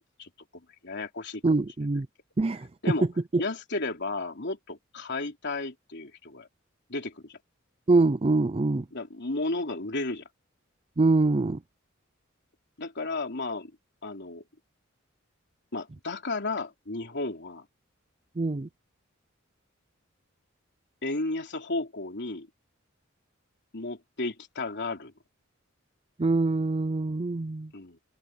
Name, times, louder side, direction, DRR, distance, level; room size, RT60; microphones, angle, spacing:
voice 1, 0.0-1.4 2.8-3.1 3.4-6.5 6.9-7.4 8.9-10.2 12.8-13.7 14.0-14.4 15.7-17.7 21.0-22.5 23.7-25.1 27.7-28.0, left 2 dB, 60° left, 3.5 m, -33 dB
voice 2, 1.4-2.1 2.4-2.7 3.3-3.4 7.9-8.9 11.0-11.6 18.4-18.7 26.2-27.7, right 3 dB, 30° right, 0.5 m, -24 dB
head